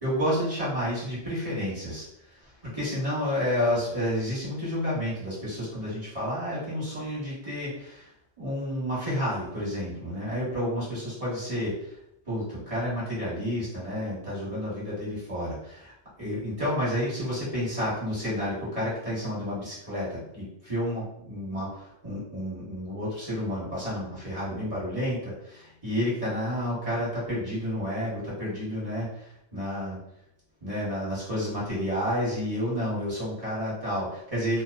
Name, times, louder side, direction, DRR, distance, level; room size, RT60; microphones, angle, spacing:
voice 1, 0.0-2.0 2.3-8.1 8.4-11.9 12.2-15.9 16.2-30.0 30.6-34.6, equal, 30° right, -8 dB, 1.2 m, -30 dB
2.5 x 2.1 x 2.4 m, 0.75 s
omnidirectional pair, 1.2 m